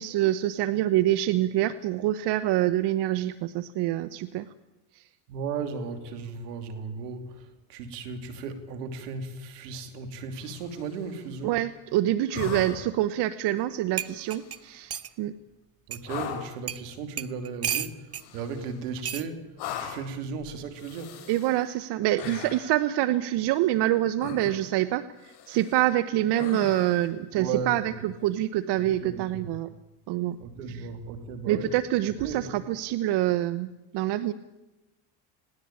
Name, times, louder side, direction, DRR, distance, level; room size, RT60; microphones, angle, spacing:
voice 1, 0.0-4.5 4.9-5.0 11.4-15.3 21.3-29.7 30.1-30.4 30.7-30.9 31.5-34.3, right 14 dB, 60° right, 14 dB, 1.0 m, -26 dB
voice 2, 5.3-11.6 15.9-19.5 19.8-21.2 27.3-28.0 28.8-29.5 30.4-31.7 32.2-32.5, right 5 dB, 85° right, 7 dB, 2.9 m, -36 dB
sound 1, 10.4-11.1 12.3-13.0 14.0-14.7 16.0-16.6 18.1-18.9 19.6-20.2 20.7-21.6 22.2-22.8 24.2-24.7 25.2-25.9 26.3-27.1 29.0-29.1, left 9 dB, 60° left, 7.8 m, -39 dB
sound 2, 13.6-13.7 14.0-15.1 15.9-16.0 16.7-16.8 17.2-18.3 19.0-19.3 20.4-20.7, right 9 dB, 30° right, 1.1 m, -33 dB
20.5 x 17.5 x 8.8 m, 0.99 s
hypercardioid pair, 80°, 46 cm